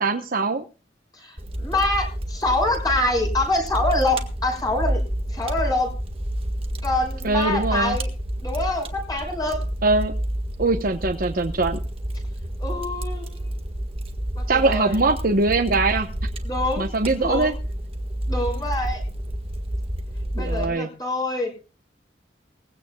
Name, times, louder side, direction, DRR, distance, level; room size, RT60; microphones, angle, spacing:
voice 1, 0.0-0.6 7.2-8.0 9.8-10.1 10.6-11.8 14.5-16.1 16.8-17.5 20.4-20.9, right 3 dB, 50° right, 5 dB, 1.0 m, -22 dB
voice 2, 1.1-5.0 5.3-5.9 6.8-8.1 8.4-9.6 12.6-13.5 14.4-15.0 16.4-16.9 17.2-17.5 18.3-19.0 20.3-21.5, left 2 dB, 20° left, 2 dB, 6.1 m, -25 dB
Fire, 1.4-20.7, right 1 dB, 30° right, 1.6 m, -29 dB
20.5 x 16.0 x 2.3 m, 0.33 s
head